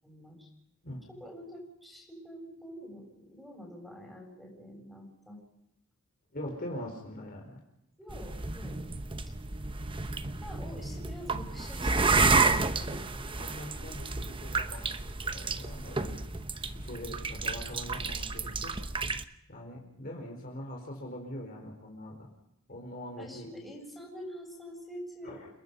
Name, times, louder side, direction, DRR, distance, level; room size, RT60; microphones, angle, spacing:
voice 1, 0.0-0.5 1.1-5.4 8.0-8.8 9.3-9.4 10.4-13.1 23.2-25.5, equal, ahead, -1 dB, 7.6 m, -46 dB
voice 2, 6.3-7.6 10.7-10.8 12.4-16.2 16.7-18.8 19.5-22.3 22.7-23.5 25.2-25.5, left 1 dB, 45° left, 1 dB, 4.6 m, -43 dB
sound 1, 8.1-19.2, right 3 dB, 25° right, 0.9 m, -31 dB
29.5 x 20.0 x 5.5 m, 0.83 s
head